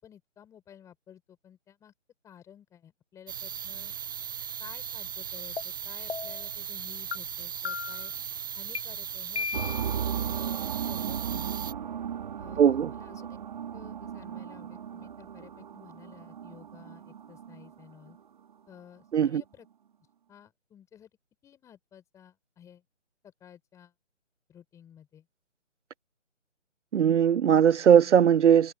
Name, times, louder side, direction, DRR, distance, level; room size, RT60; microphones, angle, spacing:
voice 1, 0.0-1.9 2.2-3.9 4.6-8.1 8.6-11.7 12.4-13.4 13.7-18.2 18.7-19.7 20.3-21.1 21.4-22.8 23.2-23.9 24.5-25.3, left 9 dB, 10° left, 5.5 m, -53 dB
sound 1, 3.3-11.7, right 8 dB, 15° right, 0.8 m, -38 dB
sound 2, 5.6-5.7 6.1-6.5 7.1-7.2 7.7-8.1 8.8-8.9 9.4-10.0, left 5 dB, 60° left, 1.0 m, -35 dB
sound 3, 9.5-18.2, right 8 dB, 40° right, 5.2 m, -36 dB
voice 2, 12.6-12.9 19.1-19.4 26.9-28.7, right 8 dB, 70° right, 0.5 m, -19 dB
figure-of-eight pair, 155°, 37 cm